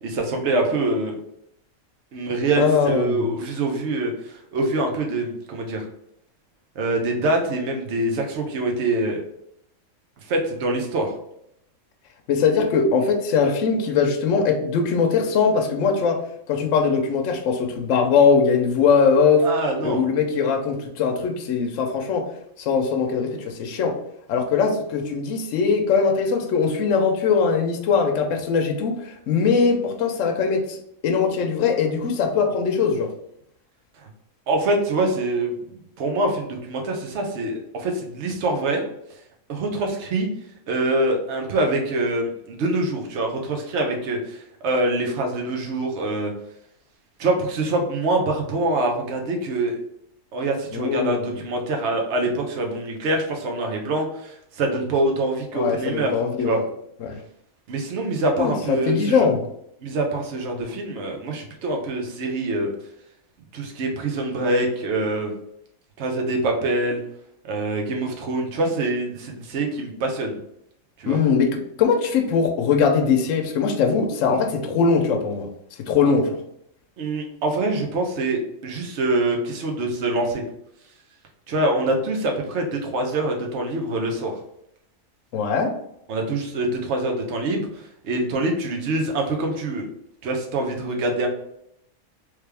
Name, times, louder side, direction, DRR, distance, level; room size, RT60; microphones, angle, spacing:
voice 1, 0.0-1.2 2.1-5.9 6.8-9.2 10.3-11.1 19.4-20.0 34.5-35.6 36.0-38.8 39.5-40.3 40.7-46.3 47.2-49.8 50.3-56.2 56.4-56.6 57.7-59.3 59.8-62.7 63.5-65.3 66.0-67.0 67.4-70.4 71.0-71.2 77.0-80.4 81.5-84.4 86.1-87.7 88.0-89.8 90.2-91.3, right 2 dB, 55° right, 2 dB, 1.0 m, -25 dB
voice 2, 2.6-3.3 12.3-16.2 16.5-19.5 19.8-22.3 22.6-24.0 24.3-30.8 31.0-33.1 50.7-51.3 55.5-56.6 57.0-57.2 58.4-59.4 71.1-71.5 71.8-75.5 75.8-76.4 85.3-85.7, left 5 dB, 70° left, 3 dB, 0.9 m, -21 dB
3.4 x 3.3 x 3.3 m, 0.75 s
omnidirectional pair, 1.5 m